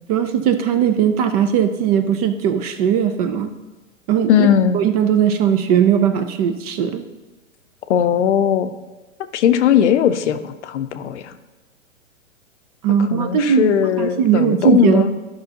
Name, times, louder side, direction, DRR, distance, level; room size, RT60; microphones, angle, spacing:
voice 1, 0.1-3.5 4.1-4.5 4.7-7.0 12.8-15.1, right 8 dB, 30° right, 9 dB, 0.5 m, -18 dB
voice 2, 4.3-4.8 7.9-8.7 9.3-11.3 13.1-15.1, left 9 dB, 60° left, 10 dB, 0.7 m, -18 dB
12.0 x 5.6 x 2.8 m, 1.2 s
hypercardioid pair, 115°, 40 cm